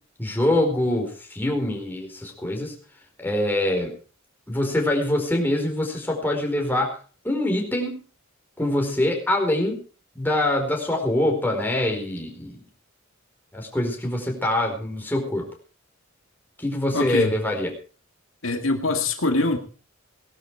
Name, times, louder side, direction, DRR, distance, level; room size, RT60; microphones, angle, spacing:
voice 1, 0.2-2.7 3.2-3.9 4.5-6.9 7.2-8.0 8.6-9.8 10.1-12.6 13.5-15.5 16.6-17.7, left 1 dB, 10° left, 1 dB, 4.6 m, -24 dB
voice 2, 16.9-17.3 18.4-19.6, left 2 dB, 75° left, 4 dB, 2.3 m, -23 dB
19.0 x 12.5 x 4.8 m, 0.38 s
head